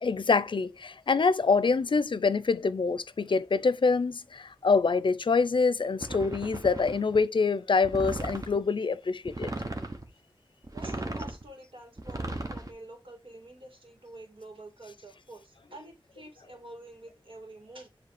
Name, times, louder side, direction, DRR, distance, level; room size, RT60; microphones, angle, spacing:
voice 1, 0.0-9.5, left 4 dB, 65° left, 0.5 m, -25 dB
sound 1, 6.0-7.2 7.8-8.6 9.2-10.0 10.6-11.4 12.0-12.7, right 2 dB, 40° right, 1.1 m, -36 dB
voice 2, 10.7-17.9, right 2 dB, 75° right, 2.1 m, -48 dB
7.4 x 3.2 x 4.9 m
wide cardioid pair, 65°, 9 cm